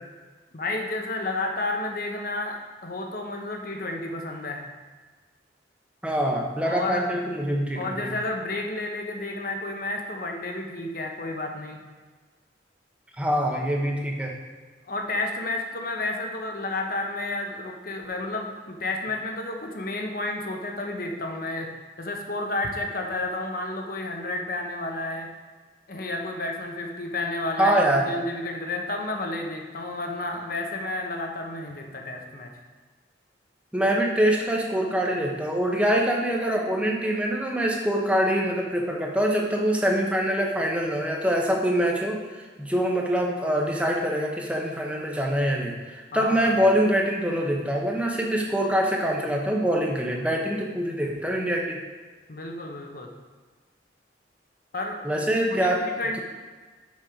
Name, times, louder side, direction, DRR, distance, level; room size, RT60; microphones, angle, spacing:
voice 1, 0.5-4.7 6.6-7.1 7.7-11.8 14.9-21.7 22.0-25.3 25.9-32.5 46.1-46.5 52.3-53.1 54.7-55.0 55.5-56.2, left 2 dB, 50° left, 2 dB, 1.0 m, -31 dB
voice 2, 6.0-8.1 13.2-14.3 27.6-28.1 33.7-51.8 55.0-55.8, equal, 5° right, -1 dB, 0.9 m, -24 dB
6.3 x 6.3 x 5.0 m, 1.4 s
head